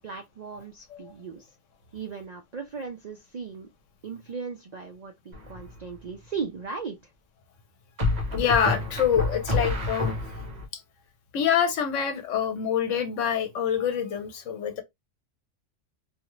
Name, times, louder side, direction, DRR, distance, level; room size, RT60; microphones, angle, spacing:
voice 1, 0.0-1.4 1.9-3.7 4.0-7.0, right 5 dB, 65° right, 0.4 m, -37 dB
sound 1, 5.3-5.8 8.0-10.6, left 2 dB, 40° right, 0.9 m, -28 dB
voice 2, 8.3-10.1 11.3-14.8, left 8 dB, 80° left, 1.1 m, -26 dB
2.7 x 2.4 x 3.0 m
omnidirectional pair, 1.3 m